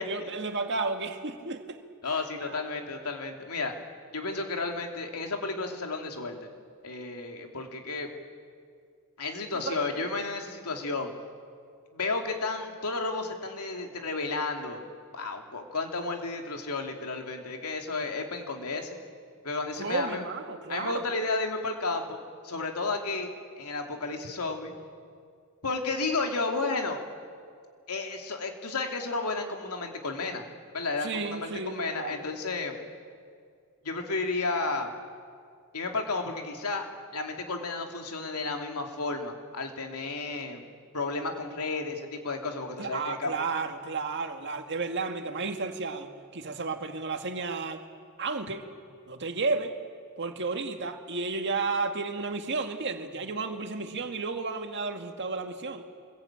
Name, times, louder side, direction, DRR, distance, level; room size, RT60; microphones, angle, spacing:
voice 1, 0.0-1.8 2.5-2.6 9.5-10.1 19.8-21.0 31.0-32.2 42.8-47.8 48.2-48.7 49.1-49.8 50.2-55.8, right 4 dB, 55° right, 5 dB, 2.0 m, -32 dB
voice 2, 2.0-3.7 4.1-6.4 6.8-8.1 9.2-11.1 11.9-14.8 15.1-19.0 19.4-20.2 20.7-24.7 25.6-27.0 27.9-30.4 30.7-32.8 33.8-34.9 35.7-36.9 37.1-40.6 40.9-43.3, left 3 dB, 85° left, 3 dB, 2.8 m, -32 dB
27.0 x 21.5 x 8.9 m, 2.2 s
head